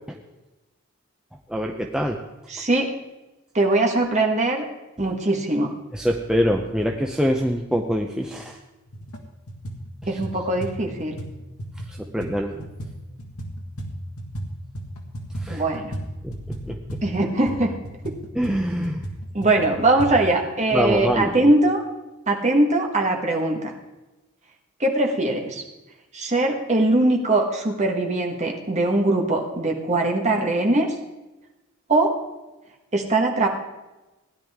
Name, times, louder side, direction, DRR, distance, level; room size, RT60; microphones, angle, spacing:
voice 1, 1.5-2.2 5.9-8.6 11.9-12.6 15.4-15.6 16.2-16.3 16.7-16.8 18.4-19.0 20.7-21.5, equal, 5° right, 1 dB, 0.6 m, -24 dB
voice 2, 2.5-2.9 3.5-4.7 5.0-5.7 10.1-11.2 15.5-16.0 17.0-17.7 18.0-18.2 19.3-21.8 22.3-23.7 24.8-25.6 26.1-31.0 31.9-32.1 32.9-33.5, right 2 dB, 30° right, 1 dB, 1.5 m, -21 dB
sound 1, 8.9-9.2 9.5-14.5 14.7-20.1, right 1 dB, 80° left, 1.8 m, -35 dB
16.5 x 10.5 x 3.6 m, 1.1 s
head